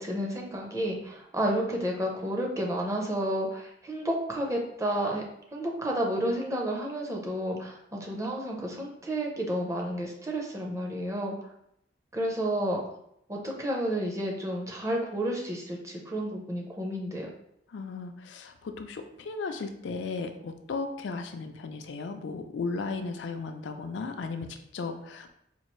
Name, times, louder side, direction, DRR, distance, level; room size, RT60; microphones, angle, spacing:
voice 1, 0.0-11.4 12.1-12.8 13.3-17.3, right 1 dB, 15° right, 0 dB, 0.6 m, -31 dB
voice 2, 17.7-25.3, left 4 dB, 75° left, 6 dB, 0.4 m, -35 dB
4.3 x 2.4 x 3.0 m, 0.75 s
head